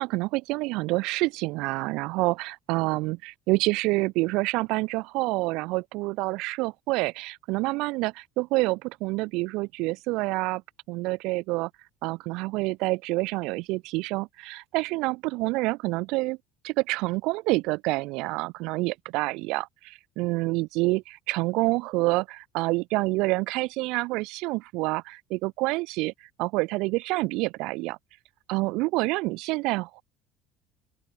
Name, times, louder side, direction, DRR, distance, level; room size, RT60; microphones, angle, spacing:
voice 1, 0.0-10.6 10.9-11.7 12.0-16.4 16.6-26.1 26.4-28.0 28.5-30.0, right 23 dB, 70° right, 0.5 m, -27 dB
open air
hypercardioid pair, 80°, 0 cm